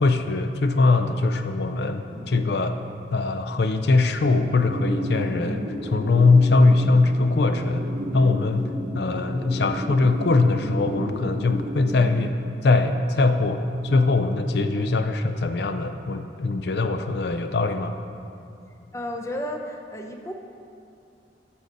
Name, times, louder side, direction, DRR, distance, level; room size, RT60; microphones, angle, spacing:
voice 1, 0.0-2.8 3.1-7.9 8.1-12.4 12.6-18.0, left 3 dB, 65° left, 7 dB, 0.5 m, -21 dB
sound 1, 2.1-3.2 3.5-3.6 3.8-12.1, equal, 40° right, 0.8 m, -33 dB
voice 2, 18.9-20.3, left 1 dB, 15° left, 3 dB, 0.6 m, -32 dB
13.5 x 6.3 x 4.0 m, 2.5 s
head